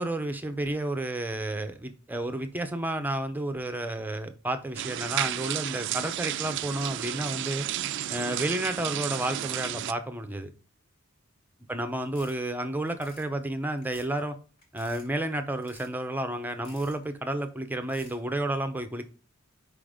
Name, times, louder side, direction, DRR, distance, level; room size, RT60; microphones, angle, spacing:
voice 1, 0.0-7.7 8.1-10.5 11.7-14.4 14.7-19.0, right 1 dB, 10° right, 7 dB, 0.6 m, -31 dB
sound 1, 4.8-9.9, right 12 dB, 60° right, 0.3 m, -32 dB
sound 2, 12.0-12.4 12.8-13.3 13.8-14.2 14.6-15.1 15.6-16.0 16.5-17.0 17.8-18.2, left 1 dB, 50° left, 2.6 m, -52 dB
5.2 x 3.8 x 4.9 m, 0.38 s
head